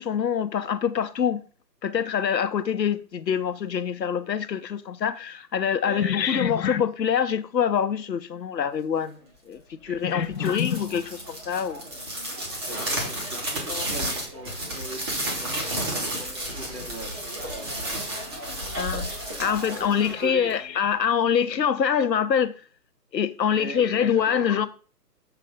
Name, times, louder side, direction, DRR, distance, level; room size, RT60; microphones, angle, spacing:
voice 1, 0.0-1.4 1.8-9.2 9.5-11.8 13.7-13.9 18.7-19.1 19.4-22.5 23.1-24.7, left 8 dB, 80° left, 0.8 m, -25 dB
voice 2, 5.8-6.4 9.9-10.6 12.7-17.1 17.5-18.1 19.7-20.5 23.5-24.7, right 1 dB, 65° right, 2.7 m, -41 dB
sound 1, 10.3-20.7, right 1 dB, 15° right, 1.1 m, -32 dB
6.8 x 3.3 x 4.8 m
figure-of-eight pair, 145°, 50 cm